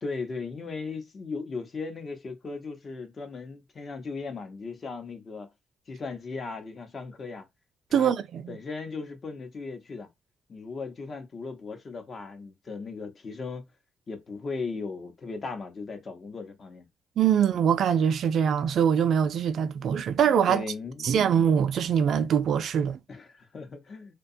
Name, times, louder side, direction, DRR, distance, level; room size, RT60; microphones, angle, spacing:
voice 1, 0.0-5.5 5.9-7.5 7.9-8.1 8.5-10.1 10.5-13.6 14.1-16.9 19.7-19.8 20.5-21.2 23.1-24.1, left 4 dB, 45° left, 0.7 m, -37 dB
voice 2, 7.9-8.6 17.2-20.6 21.0-23.0, right 8 dB, 65° right, 0.4 m, -23 dB
2.7 x 2.2 x 2.6 m
cardioid pair, 90°, 0 cm